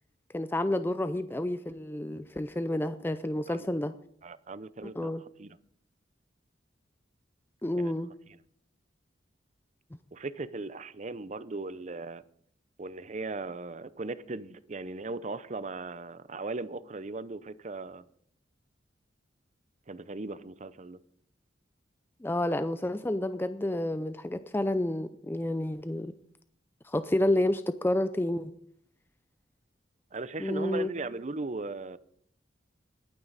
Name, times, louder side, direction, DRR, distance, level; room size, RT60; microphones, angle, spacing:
voice 1, 0.3-3.9 5.0-5.2 7.6-8.1 22.2-26.1 26.8-28.5 30.4-30.9, left 1 dB, 10° left, 0.5 m, -29 dB
voice 2, 4.2-5.1 5.4-5.6 7.8-7.9 10.1-12.2 12.8-18.0 19.9-21.0 30.1-32.0, right 3 dB, 40° right, 0.6 m, -38 dB
20.5 x 9.2 x 4.1 m
head